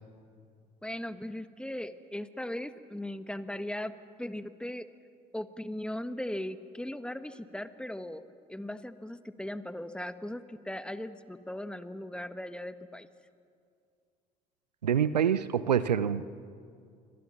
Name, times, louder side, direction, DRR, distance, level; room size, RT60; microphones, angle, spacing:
voice 1, 0.8-3.9 4.2-4.9 5.3-8.2 8.5-13.1, left 1 dB, 5° left, 11 dB, 1.6 m, -38 dB
voice 2, 14.8-16.3, right 8 dB, 85° right, 16 dB, 0.6 m, -26 dB
27.5 x 25.0 x 7.3 m, 2.3 s
figure-of-eight pair, 55°, 21 cm